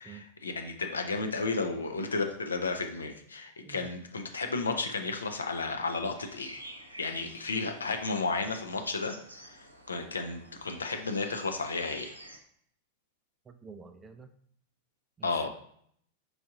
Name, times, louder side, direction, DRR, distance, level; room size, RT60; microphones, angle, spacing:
voice 1, 0.0-6.6 7.0-9.1 9.4-12.1 15.2-15.5, left 3 dB, 75° left, 5 dB, 0.5 m, -33 dB
sound 1, 6.2-12.4, right 1 dB, 80° right, 0.5 m, -49 dB
voice 2, 13.5-14.3 15.2-15.5, right 5 dB, 20° right, 9 dB, 0.3 m, -49 dB
4.7 x 2.6 x 3.6 m, 0.65 s
figure-of-eight pair, 90°, 0 cm